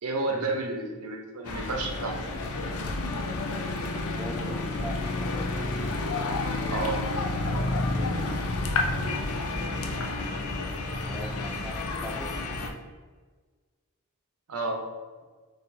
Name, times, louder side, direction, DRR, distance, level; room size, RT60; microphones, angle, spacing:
voice 1, 0.0-2.2 6.7-7.0 14.5-14.8, right 2 dB, 85° right, 2 dB, 0.7 m, -30 dB
sound 1, 1.4-12.7, left 2 dB, 80° left, 0.5 m, -30 dB
voice 2, 3.9-5.5 7.5-8.7 11.1-12.4, equal, 5° right, 1 dB, 0.3 m, -41 dB
4.2 x 2.5 x 4.1 m, 1.4 s
head